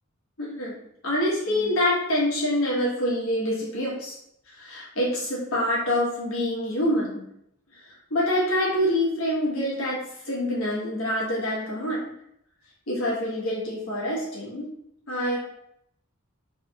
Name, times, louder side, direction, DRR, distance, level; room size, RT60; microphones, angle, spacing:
voice 1, 0.4-0.8 1.0-4.2 4.5-7.2 7.7-7.8 8.1-10.0 10.2-12.1 12.9-14.7 15.1-15.4, left 1 dB, 75° left, -5 dB, 1.4 m, -26 dB
3.4 x 2.9 x 3.5 m, 0.73 s
head